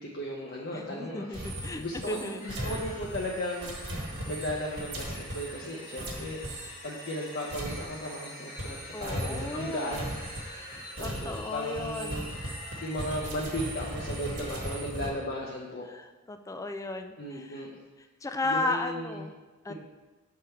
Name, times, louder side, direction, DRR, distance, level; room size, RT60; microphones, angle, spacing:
voice 1, 0.0-6.4 6.8-10.2 11.0-12.3 12.8-15.9 17.2-17.8 18.4-19.3 19.7-19.8, equal, 50° left, -3 dB, 0.7 m, -36 dB
voice 2, 0.7-2.8 4.0-4.1 8.9-10.0 10.5-12.3 15.9-17.6 18.2-19.3 19.6-19.7, left 2 dB, 15° left, 7 dB, 0.3 m, -35 dB
sound 1, 1.3-8.3 8.6-15.1, right 1 dB, 55° right, 1.2 m, -38 dB
sound 2, 2.4-14.8, left 1 dB, 80° left, 1.9 m, -46 dB
6.8 x 3.7 x 4.4 m, 1.2 s
head